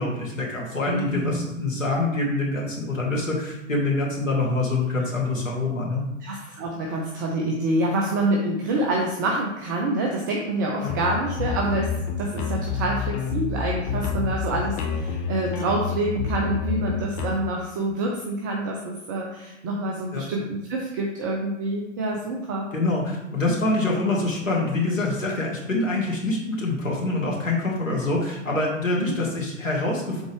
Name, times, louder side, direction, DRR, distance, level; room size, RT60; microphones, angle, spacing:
voice 1, 0.0-6.1 10.8-11.0 20.1-20.3 22.7-30.2, left 2 dB, 85° left, -2 dB, 1.9 m, -25 dB
voice 2, 0.9-1.4 6.2-22.7 29.0-29.2, right 1 dB, 15° right, 0 dB, 0.4 m, -27 dB
sound 1, 10.9-17.3, left 6 dB, 30° left, 0.9 m, -28 dB
7.1 x 4.0 x 3.5 m, 0.95 s
hypercardioid pair, 120°, 38 cm